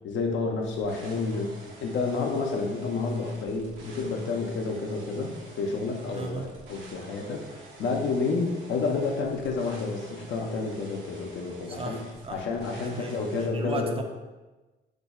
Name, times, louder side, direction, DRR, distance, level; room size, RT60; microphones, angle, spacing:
voice 1, 0.0-12.0 12.3-13.9, left 4 dB, 70° left, 1 dB, 0.6 m, -30 dB
sound 1, 0.6-13.5, right 2 dB, 90° right, 0.7 m, -49 dB
voice 2, 6.1-6.5 11.8-12.4 12.8-14.0, right 3 dB, 30° right, 4 dB, 0.4 m, -36 dB
2.6 x 2.3 x 4.0 m, 1.2 s
cardioid pair, 90°, 20 cm